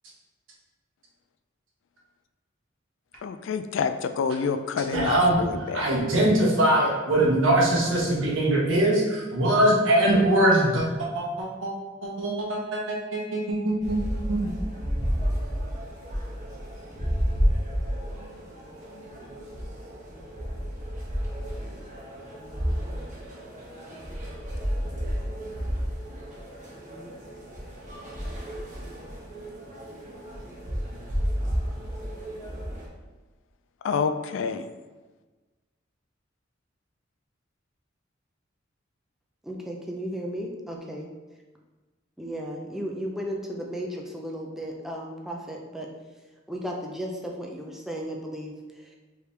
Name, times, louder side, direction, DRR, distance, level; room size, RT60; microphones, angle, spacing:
voice 1, 3.2-5.9 33.8-34.7, left 5 dB, 70° left, 9 dB, 0.3 m, -28 dB
voice 2, 4.9-5.4 5.7-11.7 12.0-14.0 14.3-14.5, right 1 dB, 75° right, -3 dB, 1.2 m, -22 dB
sound 1, 13.8-32.9, equal, 40° right, 0.9 m, -31 dB
voice 3, 39.4-41.1 42.2-45.9 46.5-49.0, equal, ahead, -1 dB, 0.5 m, -35 dB
4.9 x 3.2 x 3.3 m, 1.2 s
head